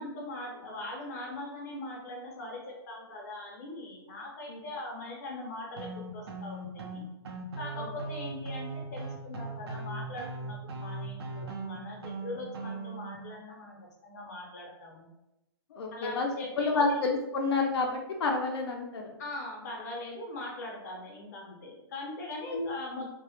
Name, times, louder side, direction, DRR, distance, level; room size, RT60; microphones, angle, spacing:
voice 1, 0.0-7.0 7.6-13.8 14.0-15.1 15.9-16.9 19.2-23.1, left 2 dB, 40° left, -1 dB, 0.7 m, -41 dB
sound 1, 5.8-13.2, right 3 dB, 80° right, 0.5 m, -39 dB
voice 2, 15.7-16.3 16.6-19.1 22.5-22.7 23.0-23.1, left 3 dB, 80° left, 1 dB, 0.5 m, -29 dB
2.1 x 2.0 x 2.9 m, 0.93 s
hypercardioid pair, 175°, 13 cm